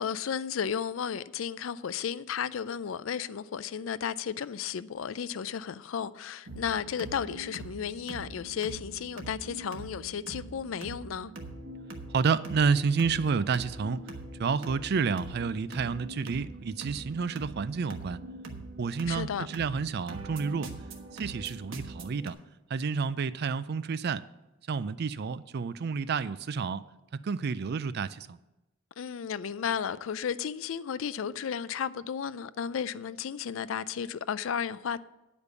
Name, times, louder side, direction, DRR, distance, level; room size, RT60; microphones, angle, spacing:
voice 1, 0.0-11.3 19.1-19.5 29.0-35.0, left 7 dB, 75° left, 0.4 m, -33 dB
sound 1, 6.5-22.3, right 2 dB, 70° right, 1.3 m, -43 dB
voice 2, 12.1-14.0 14.4-18.2 18.8-20.7 21.1-22.4 22.7-24.2 24.7-26.8 27.2-28.4, right 5 dB, 50° right, 0.4 m, -30 dB
9.9 x 5.2 x 8.1 m
head